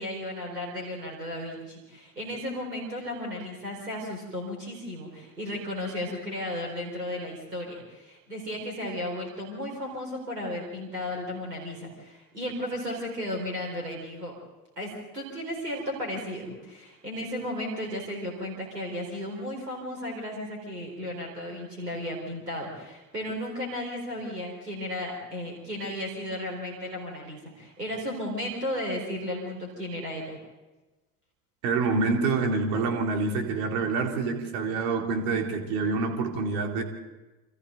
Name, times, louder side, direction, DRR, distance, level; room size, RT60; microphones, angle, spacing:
voice 1, 0.0-14.3 14.8-30.4, left 1 dB, 85° right, 0 dB, 4.6 m, -34 dB
voice 2, 31.6-36.8, right 4 dB, 60° right, 3 dB, 3.5 m, -27 dB
29.0 x 26.0 x 4.0 m, 1.1 s
figure-of-eight pair, 60°, 47 cm